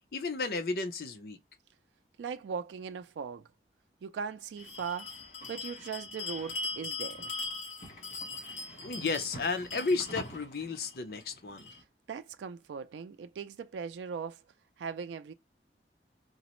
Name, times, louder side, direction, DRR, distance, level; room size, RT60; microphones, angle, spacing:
voice 1, 0.1-1.4 8.8-11.7, left 4 dB, 60° left, 0.5 m, -33 dB
voice 2, 2.2-3.5 4.0-5.2 5.5-7.3 11.7-11.8 12.1-14.4 14.8-15.3, right 6 dB, 85° right, 0.3 m, -39 dB
Bell, 4.6-11.8, left 3 dB, 40° left, 1.1 m, -40 dB
3.9 x 2.0 x 2.9 m
head